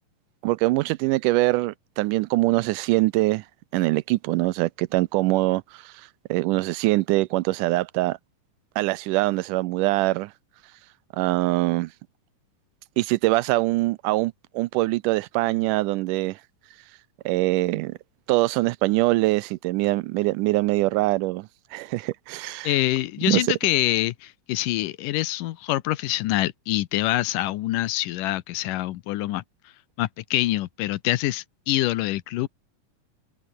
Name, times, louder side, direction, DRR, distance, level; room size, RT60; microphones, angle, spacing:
voice 1, 0.4-3.4 3.7-8.2 8.8-10.3 11.1-11.9 13.0-16.4 17.3-18.0 18.3-22.7 23.3-23.4, right 19 dB, 80° right, 2.0 m, -23 dB
voice 2, 22.6-29.4 30.0-32.5, left 16 dB, 80° left, 2.5 m, -25 dB
omnidirectional pair, 3.8 m